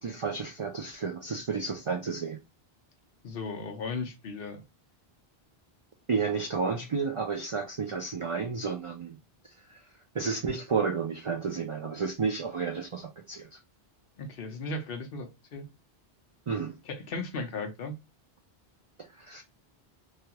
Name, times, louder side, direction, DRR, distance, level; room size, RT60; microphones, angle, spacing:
voice 1, 0.0-2.4 6.1-9.2 9.7-9.8 10.1-13.6 16.5-16.8 19.0-19.4, right 5 dB, 55° right, 0.3 m, -31 dB
voice 2, 3.2-4.6 14.2-15.6 16.9-17.9, left 3 dB, 65° left, 0.9 m, -36 dB
3.2 x 2.3 x 2.8 m
omnidirectional pair, 1.1 m